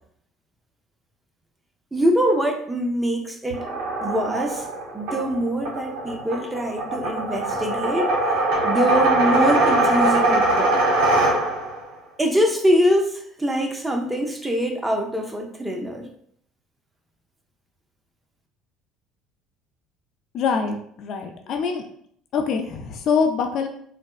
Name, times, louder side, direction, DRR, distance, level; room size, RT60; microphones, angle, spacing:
voice 1, 1.9-3.6 4.0-4.7 4.9-8.2 8.6-10.8 12.2-16.1, equal, 15° right, 3 dB, 0.6 m, -23 dB
sound 1, 3.5-11.8, right 2 dB, 75° right, 0.8 m, -22 dB
voice 2, 20.3-21.8 22.3-23.7, left 5 dB, 55° left, 4 dB, 0.4 m, -24 dB
4.1 x 2.0 x 2.4 m, 0.65 s
hypercardioid pair, 70°, 0 cm